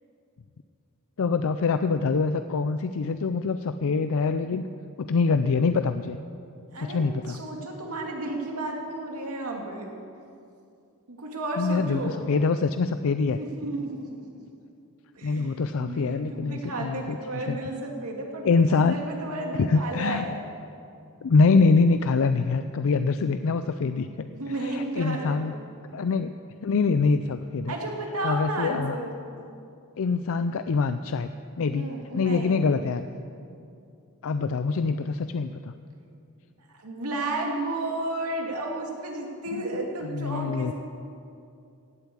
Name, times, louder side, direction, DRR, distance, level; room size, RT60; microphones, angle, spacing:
voice 1, 1.2-4.7 5.0-6.2 6.8-7.4 11.6-13.4 15.2-17.2 17.5-17.6 18.4-19.0 19.6-20.3 21.2-24.3 24.6-25.5 25.9-26.3 26.6-27.7 28.2-29.0 30.0-31.3 31.6-33.1 34.2-35.7 39.5-39.6 40.0-40.7, left 4 dB, 65° left, 10 dB, 0.4 m, -24 dB
voice 2, 7.3-9.9 11.1-12.2 13.4-14.2 15.1-20.4 24.3-25.5 27.7-29.3 31.7-32.6 36.7-40.7, right 2 dB, 75° right, 0 dB, 2.5 m, -33 dB
16.5 x 8.2 x 8.5 m, 2.6 s
head